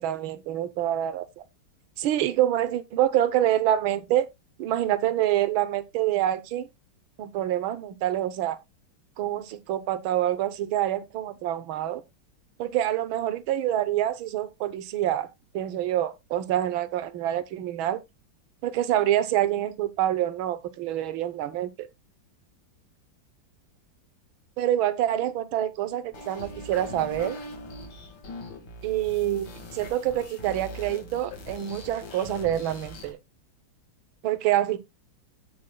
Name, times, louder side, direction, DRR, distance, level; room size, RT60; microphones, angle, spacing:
voice 1, 0.0-1.4 2.0-4.3 4.6-6.7 7.2-8.6 9.2-12.0 12.6-15.3 15.5-18.0 18.6-21.9 24.6-27.4 28.8-33.2 34.2-34.8, right 12 dB, 90° right, 1.6 m, -26 dB
sound 1, 26.1-33.1, left 1 dB, 75° left, 2.8 m, -41 dB
16.5 x 5.6 x 2.2 m
omnidirectional pair, 2.1 m